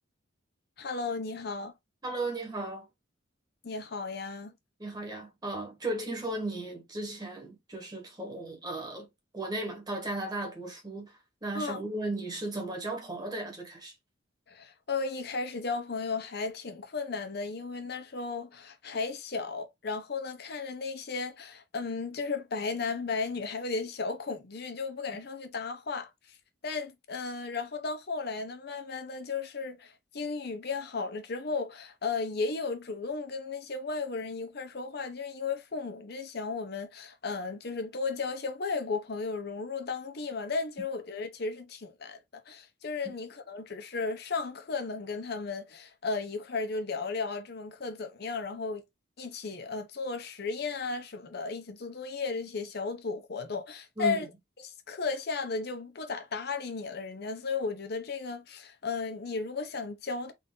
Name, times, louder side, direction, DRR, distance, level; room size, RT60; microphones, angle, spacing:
voice 1, 0.8-1.7 3.6-4.5 11.5-11.8 14.5-26.1 26.6-42.2 42.5-48.8 49.2-54.3 54.6-60.3, left 4 dB, 55° left, 0.7 m, -35 dB
voice 2, 2.0-2.9 4.8-9.1 9.3-11.1 11.4-13.9 54.0-54.3, right 2 dB, 20° right, 1.3 m, -35 dB
3.9 x 2.6 x 3.7 m
head